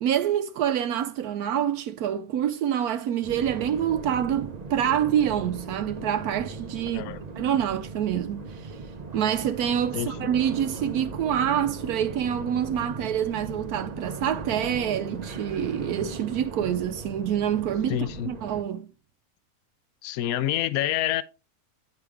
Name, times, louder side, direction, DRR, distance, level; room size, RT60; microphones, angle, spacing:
voice 1, 0.0-8.8 9.1-18.0 18.2-18.9, right 9 dB, 80° right, 1.1 m, -26 dB
sound 1, 3.2-18.6, right 3 dB, 35° right, 0.7 m, -38 dB
voice 2, 6.9-7.2 9.9-10.3 17.9-18.3 20.0-21.2, left 13 dB, 75° left, 1.0 m, -28 dB
9.6 x 4.9 x 3.4 m
omnidirectional pair, 1.6 m